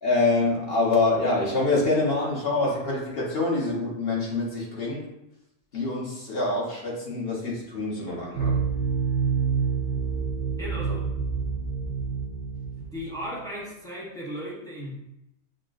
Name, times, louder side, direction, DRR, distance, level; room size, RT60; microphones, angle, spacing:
voice 1, 0.0-5.1 5.7-8.6, left 2 dB, 45° left, -4 dB, 1.1 m, -25 dB
sound 1, 8.4-13.4, right 5 dB, 50° right, 0.6 m, -27 dB
voice 2, 10.6-11.1 12.8-14.9, equal, 5° left, -5 dB, 0.3 m, -36 dB
6.4 x 2.2 x 2.4 m, 0.87 s
omnidirectional pair, 1.6 m